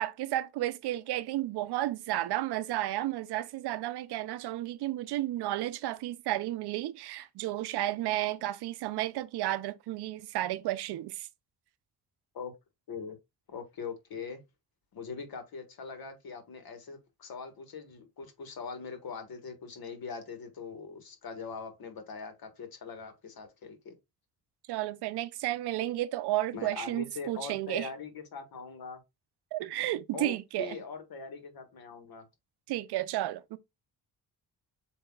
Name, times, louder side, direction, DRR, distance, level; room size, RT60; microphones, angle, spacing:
voice 1, 0.0-11.3 24.7-27.9 29.5-30.8 32.7-33.6, right 15 dB, 90° right, 0.5 m, -32 dB
voice 2, 13.5-14.4 14.9-23.9 26.5-29.0 30.1-32.2, left 5 dB, 65° left, 1.5 m, -42 dB
7.7 x 2.8 x 2.3 m
cardioid pair, 85°, 39 cm